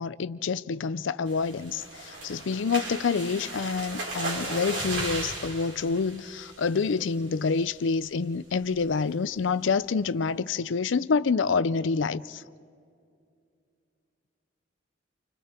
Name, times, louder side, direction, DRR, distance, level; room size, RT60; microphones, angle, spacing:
voice 1, 0.0-12.4, left 5 dB, 85° left, 0.5 m, -27 dB
sound 1, 1.3-7.0 7.4-7.7 8.0-8.1 8.5-8.8, right 2 dB, 80° right, 5.6 m, -36 dB
30.0 x 25.5 x 4.4 m
head